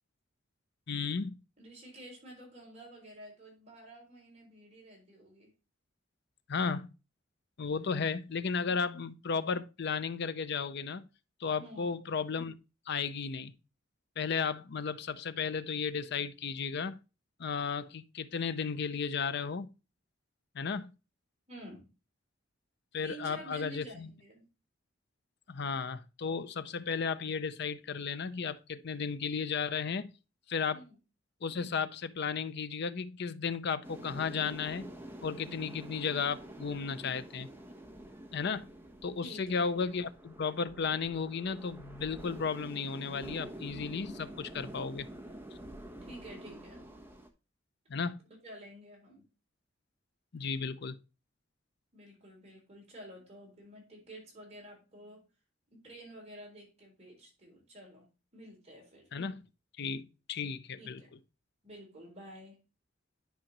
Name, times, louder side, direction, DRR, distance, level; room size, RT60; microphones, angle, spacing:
voice 1, 0.9-1.4 6.5-6.9 7.6-11.0 11.4-12.6 12.9-13.5 14.2-17.0 17.4-19.7 20.5-20.9 22.9-24.1 25.5-30.1 30.5-30.8 31.4-34.9 35.2-37.5 38.3-38.7 39.0-45.1 47.9-48.2 50.3-51.0 59.1-59.4 59.8-61.0, left 5 dB, 60° left, 0.6 m, -34 dB
voice 2, 1.6-5.5 7.9-8.0 11.6-11.9 21.5-21.9 23.0-24.4 30.7-31.0 39.2-40.1 46.0-46.8 48.3-49.2 51.9-55.2 55.7-58.1 58.3-59.1 60.8-61.1 61.6-62.6, right 1 dB, 35° right, 4.0 m, -50 dB
sound 1, 33.8-47.3, right 1 dB, 10° right, 1.0 m, -48 dB
10.5 x 4.9 x 3.0 m
head